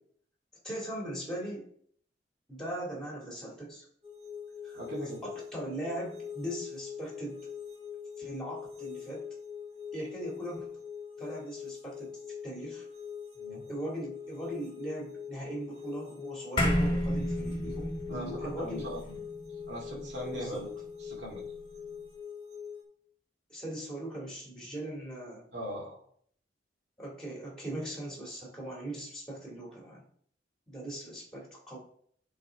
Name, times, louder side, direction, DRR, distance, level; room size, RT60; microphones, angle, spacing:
voice 1, 0.6-1.7 2.5-3.9 4.6-4.8 5.2-7.4 8.2-9.2 9.9-10.7 11.2-12.1 12.4-12.8 13.7-18.9 20.3-20.6 23.5-25.4 27.0-30.0 30.7-31.8, right 1 dB, 5° left, -3 dB, 2.1 m, -39 dB
sound 1, 4.0-22.8, left 7 dB, 30° right, 1.2 m, -43 dB
voice 2, 4.7-5.2 13.4-13.6 18.1-19.2 19.7-20.7 21.0-21.4 25.5-26.0, equal, 80° right, -5 dB, 2.2 m, -39 dB
sound 2, 16.6-21.2, equal, 25° left, 1.4 m, -32 dB
9.9 x 4.1 x 3.4 m, 0.62 s
head